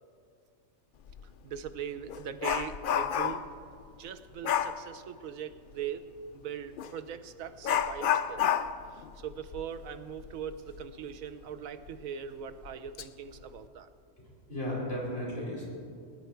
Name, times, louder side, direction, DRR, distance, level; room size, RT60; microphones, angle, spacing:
Dog, 1.1-1.2 1.7-3.6 4.4-4.8 6.8-6.9 7.6-10.9 11.2-11.3 11.9-12.0 12.6-13.0 13.4-13.7, left 9 dB, 65° left, 0.5 m, -30 dB
voice 1, 1.4-3.4 4.0-6.1 6.3-8.4 8.9-13.9, right 8 dB, 90° right, 11 dB, 1.1 m, -40 dB
voice 2, 14.2-15.6, left 1 dB, 45° left, -5 dB, 4.7 m, -35 dB
20.0 x 9.6 x 4.5 m, 2.2 s
omnidirectional pair, 1.4 m